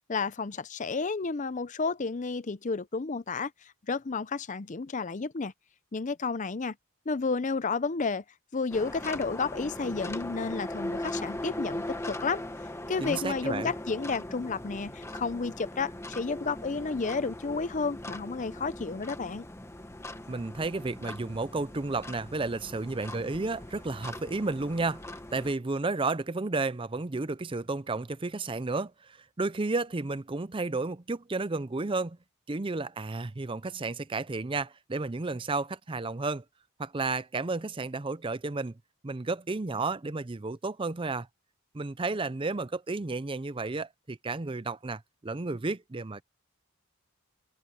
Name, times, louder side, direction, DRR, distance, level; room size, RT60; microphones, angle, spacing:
voice 1, 0.1-3.5 3.9-5.5 5.9-6.7 7.1-8.2 8.5-12.4 12.9-19.4, left 4 dB, 35° left, 0.6 m, -31 dB
sound 1, 8.7-25.5, left 1 dB, 10° left, 1.0 m, -40 dB
voice 2, 13.0-13.7 20.3-25.0 25.3-32.2 32.5-36.4 36.8-38.7 39.0-41.3 41.7-46.2, right 3 dB, 25° right, 0.5 m, -32 dB
head